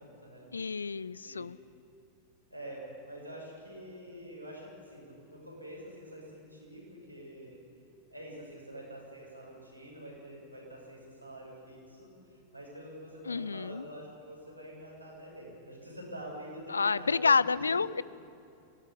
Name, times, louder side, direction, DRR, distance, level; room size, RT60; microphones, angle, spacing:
voice 1, 0.0-0.5 1.2-1.4 2.5-7.6 8.1-17.9, right 1 dB, 90° right, -3 dB, 7.2 m, -46 dB
voice 2, 0.5-1.6 13.3-13.8 16.7-18.0, left 5 dB, 75° left, 20 dB, 0.5 m, -29 dB
24.0 x 18.0 x 8.4 m, 2.7 s
figure-of-eight pair, 90°, 0 cm